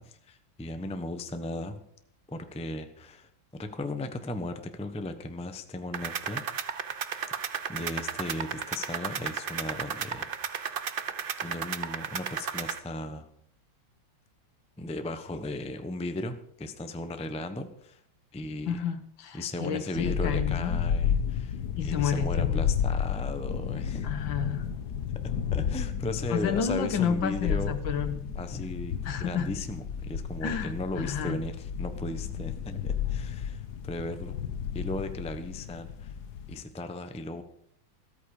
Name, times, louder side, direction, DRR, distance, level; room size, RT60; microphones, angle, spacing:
voice 1, 0.0-1.8 2.3-6.7 7.7-10.3 10.7-10.8 11.4-13.2 14.8-18.0 18.3-18.8 19.3-24.1 25.5-27.8 28.3-28.9 29.2-34.4 34.7-36.1 36.5-37.4, left 2 dB, 5° left, 8 dB, 0.6 m, -36 dB
sound 1, 5.9-12.8, right 7 dB, 80° right, 0.5 m, -34 dB
voice 2, 18.7-20.8 21.8-22.6 24.0-24.6 26.3-28.3 29.1-29.5 30.4-31.4, left 7 dB, 75° left, 10 dB, 1.9 m, -31 dB
sound 2, 19.9-36.6, left 7 dB, 60° left, 1.5 m, -32 dB
14.0 x 13.5 x 4.9 m, 0.68 s
omnidirectional pair, 2.1 m